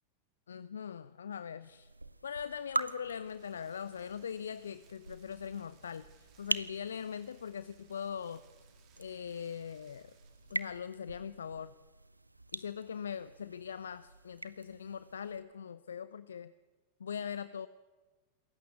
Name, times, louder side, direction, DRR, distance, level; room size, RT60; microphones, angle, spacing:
voice 1, 0.5-1.9 2.2-8.4 9.0-10.1 10.5-11.7 12.5-16.5 17.0-17.7, left 7 dB, 70° left, 16 dB, 0.6 m, -41 dB
sound 1, 1.6-15.4, right 2 dB, 85° right, 0.9 m, -43 dB
Rain, 3.0-10.8, right 9 dB, 35° right, 2.3 m, -67 dB
27.0 x 15.5 x 8.5 m, 1.3 s
figure-of-eight pair, 90°, 0 cm